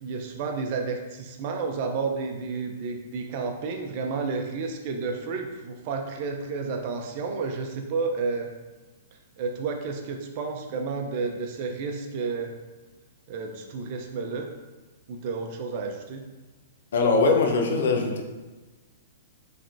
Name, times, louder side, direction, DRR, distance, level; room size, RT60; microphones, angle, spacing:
voice 1, 0.0-8.5 9.4-12.5 13.3-14.5 15.1-16.2, right 4 dB, 45° right, 4 dB, 0.7 m, -31 dB
voice 2, 16.9-18.2, left 3 dB, 75° left, 3 dB, 0.8 m, -21 dB
5.7 x 3.3 x 2.7 m, 1.2 s
hypercardioid pair, 140°, 0 cm